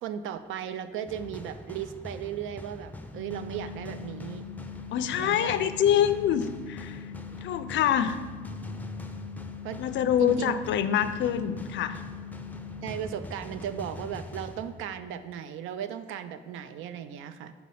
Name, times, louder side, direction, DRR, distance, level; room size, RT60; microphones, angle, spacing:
voice 1, 0.0-4.4 5.2-5.7 9.6-9.8 10.2-10.5 12.8-17.5, right 9 dB, 85° right, 11 dB, 0.4 m, -36 dB
sound 1, 1.1-15.3, left 2 dB, 10° left, 0.4 m, -43 dB
sound 2, 3.1-12.9, left 7 dB, 35° right, 1.0 m, -43 dB
voice 2, 4.9-7.0 7.4-8.2 9.8-12.0, left 9 dB, 70° left, 12 dB, 0.4 m, -25 dB
4.2 x 4.2 x 5.5 m, 1.5 s
cardioid pair, 90°, 20 cm